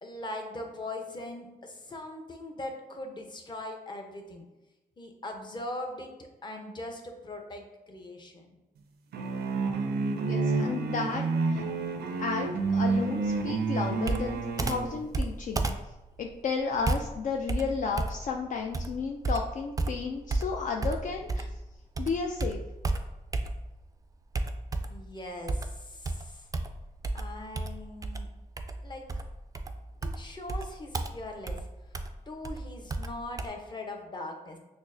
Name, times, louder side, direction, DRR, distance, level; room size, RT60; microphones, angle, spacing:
voice 1, 0.0-4.4 5.0-8.6 24.9-26.5 27.1-28.3 28.8-29.1 30.0-32.0 32.3-34.6, left 1 dB, 25° left, 2 dB, 0.7 m, -41 dB
sound 1, 9.1-15.0, right 4 dB, 85° right, 0.5 m, -29 dB
voice 2, 10.2-11.2 11.5-11.6 12.2-15.7 16.2-21.5 22.0-22.6, left 5 dB, 55° left, 2 dB, 0.4 m, -33 dB
Computer keyboard, 14.0-21.6 22.0-23.9 24.3-25.1 25.5-33.5, right 2 dB, 20° right, 0.3 m, -33 dB
6.0 x 2.1 x 2.6 m, 1.0 s
cardioid pair, 80°, 16 cm